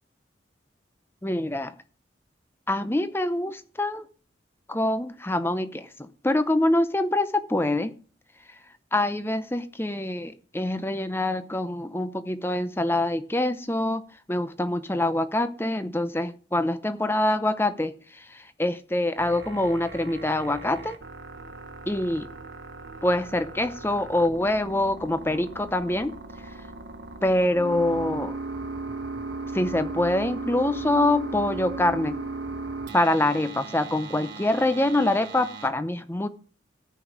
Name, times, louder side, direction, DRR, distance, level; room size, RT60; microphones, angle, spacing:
voice 1, 1.2-1.7 2.7-4.0 4.7-7.9 8.9-14.0 14.3-21.0 21.9-22.3 23.0-26.1 27.2-28.4 29.5-32.2 32.9-36.3, left 1 dB, 10° left, 0.6 m, -25 dB
sound 1, 19.2-35.7, right 3 dB, 70° right, 1.4 m, -37 dB
14.0 x 5.3 x 7.4 m
head